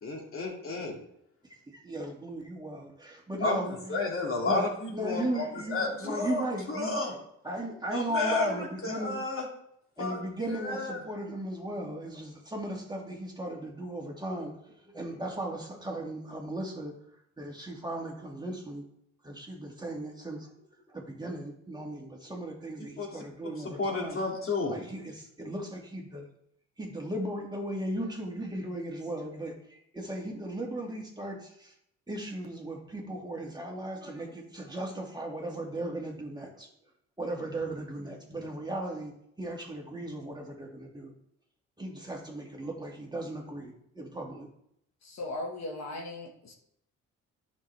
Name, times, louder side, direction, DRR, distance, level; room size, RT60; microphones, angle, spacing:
voice 1, 0.0-1.0 3.4-3.6 3.9-6.4 6.7-7.1 7.9-9.4 10.0-10.2 10.5-11.0 23.0-23.1 23.4-24.7, left 3 dB, 45° left, 0 dB, 2.6 m, -31 dB
voice 2, 1.7-4.1 4.5-7.2 7.4-9.2 10.0-16.9 17.4-18.8 19.2-20.5 20.9-24.2 24.7-26.2 26.8-31.7 32.1-36.7 37.2-39.1 39.4-41.1 41.8-44.5, right 1 dB, 15° right, -1 dB, 2.1 m, -37 dB
voice 3, 45.0-46.5, left 2 dB, 60° left, 0 dB, 1.6 m, -38 dB
11.0 x 6.2 x 3.4 m, 0.74 s
cardioid pair, 90°, 30 cm